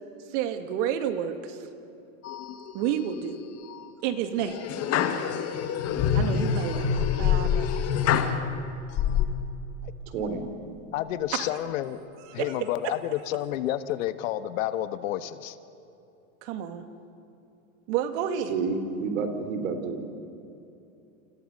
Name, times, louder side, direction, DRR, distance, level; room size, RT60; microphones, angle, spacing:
voice 1, 0.3-1.6 2.7-3.4 4.0-4.6 6.1-7.7 8.0-8.4 11.3-11.5 12.3-12.9 16.4-16.9 17.9-18.5, right 9 dB, 60° right, 7 dB, 2.5 m, -30 dB
sound 1, 2.2-2.9 3.4-3.8 4.4-8.4 8.9-9.3, left 8 dB, 35° left, 1.9 m, -26 dB
voice 2, 10.1-10.4 18.5-20.0, right 4 dB, 75° right, 7 dB, 3.9 m, -29 dB
voice 3, 10.9-12.0 12.3-15.6, left 13 dB, 70° left, 11 dB, 1.4 m, -30 dB
29.5 x 28.5 x 5.4 m, 2.8 s
supercardioid pair, 135°, 41 cm